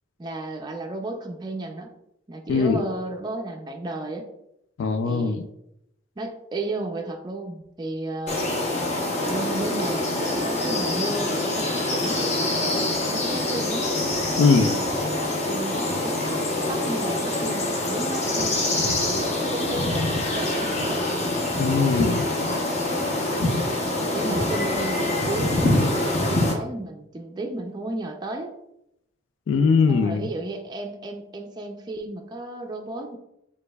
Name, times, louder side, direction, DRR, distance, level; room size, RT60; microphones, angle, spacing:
voice 1, 0.2-1.9 2.3-4.3 5.0-5.4 6.2-8.4 9.2-12.4 13.1-13.9 14.5-14.8 15.4-16.3 16.7-21.0 22.4-22.7 24.0-28.5 29.9-33.2, right 2 dB, 20° right, 1 dB, 0.4 m, -33 dB
voice 2, 2.5-2.8 4.8-5.4 14.4-14.7 21.6-22.2 29.5-30.2, left 4 dB, 75° left, 8 dB, 0.3 m, -20 dB
sound 1, 8.3-26.5, left 1 dB, 35° left, 0.8 m, -25 dB
5.0 x 3.4 x 2.3 m, 0.82 s
head